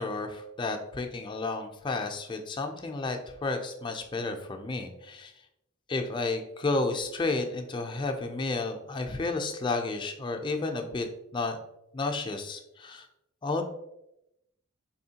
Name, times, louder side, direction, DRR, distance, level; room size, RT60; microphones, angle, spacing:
voice 1, 0.0-5.3 5.9-11.1 11.3-11.6 11.9-13.1 13.4-13.6, left 3 dB, 25° left, 4 dB, 0.4 m, -32 dB
4.3 x 3.0 x 2.7 m, 0.85 s
head